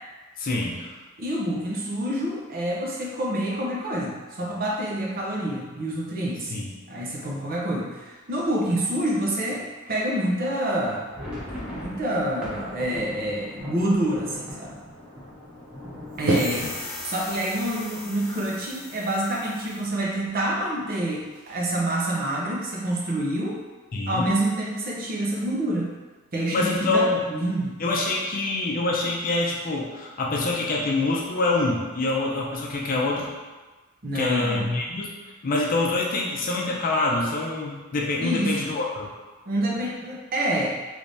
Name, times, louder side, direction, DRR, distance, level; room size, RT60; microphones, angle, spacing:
voice 1, 0.4-0.9 6.5-6.7 23.9-24.3 26.5-27.2 27.8-33.3 34.1-35.1 35.4-39.1, left 2 dB, 40° left, -2 dB, 0.5 m, -25 dB
voice 2, 1.2-11.0 11.7-14.8 16.2-16.7 17.0-23.6 24.1-25.9 26.3-27.8 34.0-34.7 38.2-38.6 39.5-40.7, right 1 dB, 45° right, -3 dB, 0.7 m, -27 dB
sound 1, 10.9-18.5 18.8-18.9 19.2-19.4 20.0-20.5, left 1 dB, 5° right, 0.9 m, -40 dB
sound 2, 15.6-15.7 16.3-17.5 19.1-19.3 19.6-20.8 21.1-22.5, right 2 dB, 85° right, 0.6 m, -32 dB
sound 3, 16.2-19.8, left 2 dB, 70° left, 0.8 m, -39 dB
3.4 x 3.2 x 2.6 m, 1.3 s
head